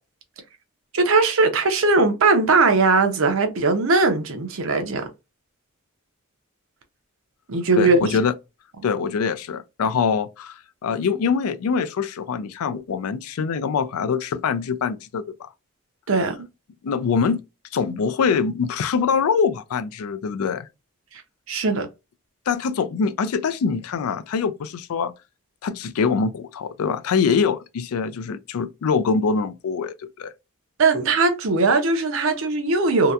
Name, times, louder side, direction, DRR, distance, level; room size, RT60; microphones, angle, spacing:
voice 1, 0.9-5.1 7.5-8.1 16.1-16.4 21.5-21.9 30.8-33.1, right 3 dB, 65° right, 0.6 m, -19 dB
voice 2, 7.8-8.3 8.8-15.5 16.8-17.4 17.7-20.7 22.5-25.1 25.6-30.3, left 5 dB, 85° left, 0.4 m, -24 dB
2.8 x 2.2 x 2.3 m
head